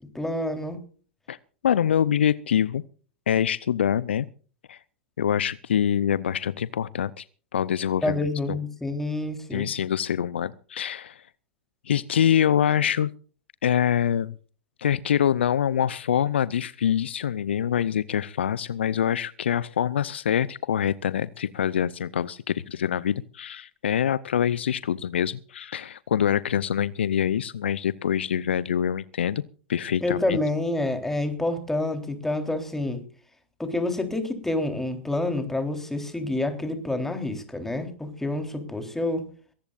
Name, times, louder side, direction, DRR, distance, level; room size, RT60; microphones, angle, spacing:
voice 1, 0.1-0.8 8.0-9.7 30.0-33.0 33.6-39.3, left 2 dB, 5° left, 6 dB, 3.6 m, -28 dB
voice 2, 1.6-2.8 3.3-4.3 4.7-4.8 5.2-7.2 7.5-8.2 8.5-8.6 9.5-11.2 11.9-13.1 13.6-14.3 14.8-29.4 29.7-30.4, left 9 dB, 70° left, 20 dB, 0.6 m, -25 dB
22.0 x 18.5 x 2.5 m, 0.41 s
figure-of-eight pair, 95°, 6 cm